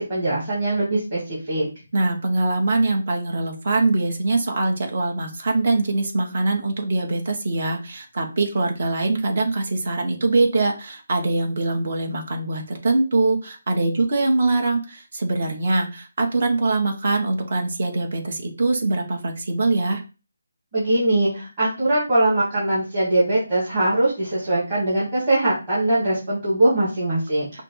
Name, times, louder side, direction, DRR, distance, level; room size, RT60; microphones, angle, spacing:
voice 1, 0.0-1.7 20.7-27.6, right 1 dB, 15° right, -12 dB, 1.4 m, -21 dB
voice 2, 1.9-20.0, right 2 dB, 35° right, 2 dB, 1.0 m, -23 dB
5.8 x 2.0 x 4.5 m, 0.31 s
hypercardioid pair, 180°, 0 cm